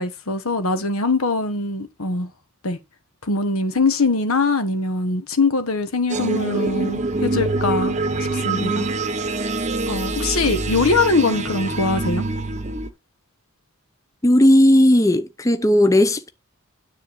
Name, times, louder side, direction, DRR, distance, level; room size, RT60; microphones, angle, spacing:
voice 1, 0.0-2.3 2.6-2.8 3.2-8.0 8.4-8.9 9.9-12.2, left 3 dB, 90° left, 1.3 m, -22 dB
sound 1, 6.1-12.9, right 2 dB, 35° right, 0.9 m, -25 dB
voice 2, 14.2-16.3, left 1 dB, 15° left, 0.6 m, -15 dB
9.6 x 3.7 x 7.1 m
head